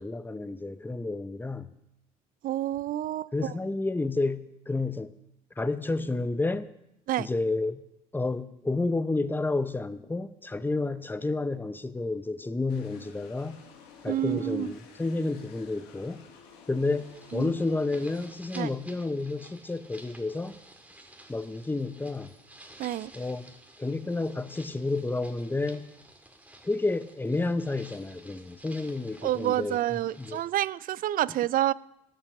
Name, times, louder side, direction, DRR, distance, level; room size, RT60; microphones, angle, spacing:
voice 1, 0.0-1.7 3.3-5.1 5.6-6.7 7.2-7.8 8.1-13.6 14.0-16.2 16.7-20.6 21.3-22.3 23.1-25.9 26.6-30.4, left 3 dB, 10° left, 13 dB, 0.8 m, -30 dB
voice 2, 2.4-3.5 7.1-7.3 14.1-14.7 17.3-17.5 18.6-18.7 22.8-23.1 29.2-31.7, right 13 dB, 50° right, 20 dB, 0.4 m, -28 dB
sound 1, 12.7-18.3, left 6 dB, 75° left, 1.6 m, -52 dB
sound 2, 16.8-30.4, right 1 dB, 10° right, 2.1 m, -52 dB
15.5 x 5.8 x 6.7 m, 0.86 s
hypercardioid pair, 65°, 19 cm